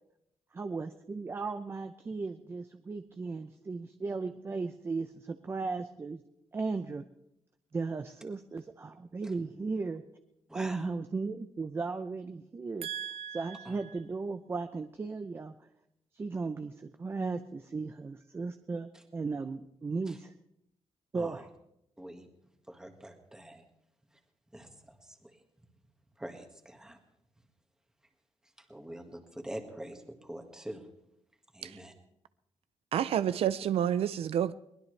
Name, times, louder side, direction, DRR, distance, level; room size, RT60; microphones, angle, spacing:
voice 1, 0.5-6.2 6.5-7.0 7.7-10.0 10.5-12.9 13.3-15.5 16.1-20.3 21.1-21.4, right 4 dB, 25° right, 8 dB, 0.6 m, -36 dB
voice 2, 10.5-10.9 13.7-13.8 18.9-19.0 20.1-20.2 21.1-21.5 22.0-22.3 22.7-23.6 24.5-25.4 26.2-27.0 28.6-30.9 31.5-31.9, right 1 dB, 5° right, 4 dB, 1.7 m, -45 dB
voice 3, 12.8-13.4 31.6-31.8 32.9-34.5, right 10 dB, 75° right, 14 dB, 0.5 m, -30 dB
22.5 x 19.5 x 3.3 m, 0.82 s
wide cardioid pair, 175°, 10 cm